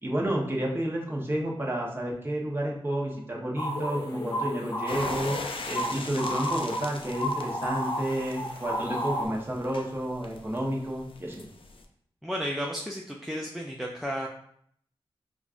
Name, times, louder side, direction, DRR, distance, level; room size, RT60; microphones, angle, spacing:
voice 1, 0.0-11.4, right 1 dB, 20° right, -2 dB, 0.9 m, -31 dB
sound 1, 3.6-9.2, equal, 40° left, 0.8 m, -32 dB
sound 2, 4.9-11.8, left 3 dB, 60° left, 0.5 m, -41 dB
voice 2, 12.2-14.3, equal, 5° right, -1 dB, 0.4 m, -33 dB
5.0 x 2.4 x 2.5 m, 0.67 s
wide cardioid pair, 70°, 10 cm